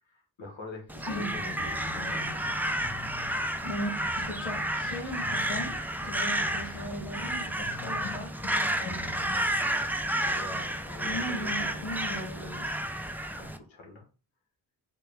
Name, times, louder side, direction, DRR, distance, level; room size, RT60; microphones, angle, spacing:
voice 1, 0.1-2.4 6.4-6.6 10.2-12.9 13.3-14.1, left 2 dB, 65° left, 1 dB, 1.3 m, -45 dB
Crow, 0.9-13.6, right 1 dB, 5° right, 0.5 m, -31 dB
sound 1, 1.2-11.8, left 3 dB, 30° left, 1.0 m, -46 dB
voice 2, 3.6-9.5 11.0-12.4, equal, 85° left, -2 dB, 1.3 m, -38 dB
4.4 x 2.3 x 3.4 m, 0.34 s
cardioid pair, 40°, 50 cm